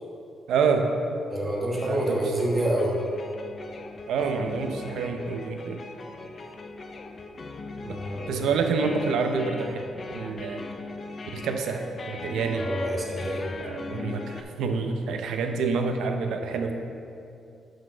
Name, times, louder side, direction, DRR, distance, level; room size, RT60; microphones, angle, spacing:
voice 1, 0.5-0.9 1.8-2.2 4.1-5.8 7.9-8.0 8.3-9.8 10.1-10.6 11.3-12.6 13.2-13.3 13.6-16.7, right 5 dB, 80° right, 5 dB, 0.6 m, -27 dB
voice 2, 1.3-3.0 7.8-8.3 12.5-13.5, right 1 dB, 15° right, -3 dB, 1.1 m, -27 dB
sound 1, 1.7-14.4, left 3 dB, 30° left, 0.4 m, -40 dB
6.1 x 5.0 x 6.0 m, 2.6 s
cardioid pair, 175°, 0 cm